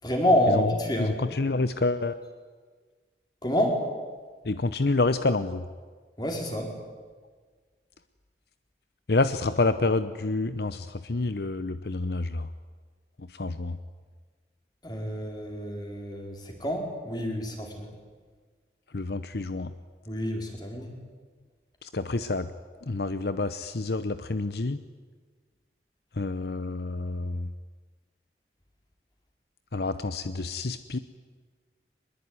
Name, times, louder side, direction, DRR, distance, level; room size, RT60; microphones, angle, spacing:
voice 1, 0.0-1.2 3.4-3.8 6.2-6.7 14.8-17.9 20.1-20.9, equal, 25° left, 2 dB, 4.8 m, -27 dB
voice 2, 1.0-2.1 4.4-5.6 9.1-12.5 13.3-13.8 18.9-19.7 21.8-22.5 22.8-24.8 26.2-27.5 29.7-31.0, left 3 dB, 65° left, 12 dB, 0.8 m, -28 dB
23.5 x 21.5 x 9.7 m, 1.5 s
head